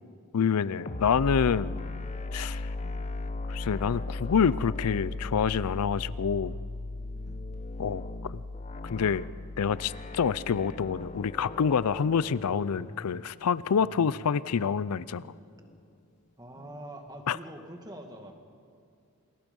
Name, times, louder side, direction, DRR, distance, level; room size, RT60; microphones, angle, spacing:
voice 1, 0.3-1.8 2.3-2.7 3.5-6.6 7.8-8.0 8.3-8.4 8.8-9.2 9.6-15.3 17.3-17.4, left 6 dB, 85° left, 18 dB, 0.5 m, -27 dB
sound 1, 0.6-17.2, left 2 dB, 30° left, 0.8 m, -46 dB
sound 2, 0.9-12.2, left 2 dB, 60° left, 1.4 m, -37 dB
voice 2, 7.1-7.5 16.4-18.3, right 1 dB, 15° right, 4 dB, 2.0 m, -45 dB
28.0 x 20.5 x 5.4 m, 2.3 s
head